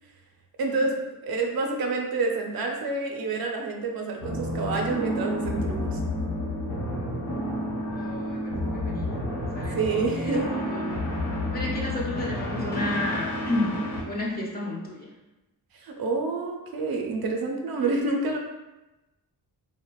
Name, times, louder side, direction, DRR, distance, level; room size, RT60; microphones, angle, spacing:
voice 1, 0.6-0.9 1.2-6.0 9.7-10.5 15.7-18.4, right 3 dB, 70° right, 1 dB, 0.5 m, -28 dB
sound 1, 4.2-14.0, left 1 dB, 80° left, 0.8 m, -30 dB
voice 2, 7.9-11.0 11.5-15.1, left 2 dB, 25° left, -3 dB, 0.5 m, -32 dB
3.2 x 2.0 x 2.2 m, 1.0 s
wide cardioid pair, 125°, 38 cm